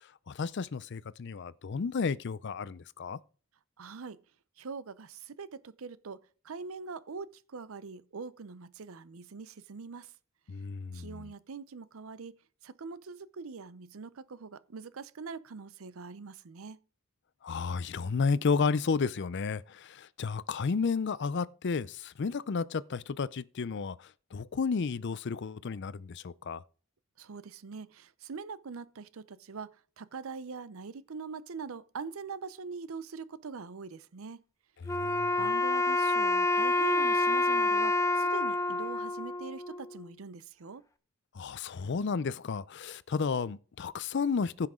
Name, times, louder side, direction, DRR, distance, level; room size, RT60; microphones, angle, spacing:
voice 1, 0.3-3.2 10.5-11.3 17.4-24.0 24.3-26.6 34.9-35.5 41.3-44.7, left 5 dB, 55° left, 0.5 m, -32 dB
voice 2, 3.8-4.2 4.6-10.1 10.9-12.4 12.6-16.8 27.2-34.4 35.4-40.8, right 4 dB, 75° right, 0.6 m, -43 dB
Wind instrument woodwind instrument, 34.9-40.0, left 2 dB, 15° left, 0.7 m, -28 dB
15.5 x 5.8 x 3.7 m
head